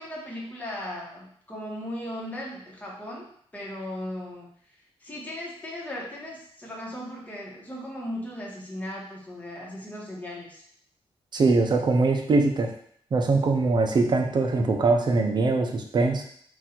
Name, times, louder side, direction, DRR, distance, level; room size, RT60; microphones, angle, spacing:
voice 1, 0.0-3.3 3.5-4.5 5.0-10.6, left 1 dB, 15° left, -4 dB, 1.2 m, -37 dB
voice 2, 11.3-12.7 13.1-16.2, right 3 dB, 45° right, 3 dB, 0.6 m, -22 dB
4.0 x 2.5 x 4.3 m, 0.63 s
wide cardioid pair, 130°, 10 cm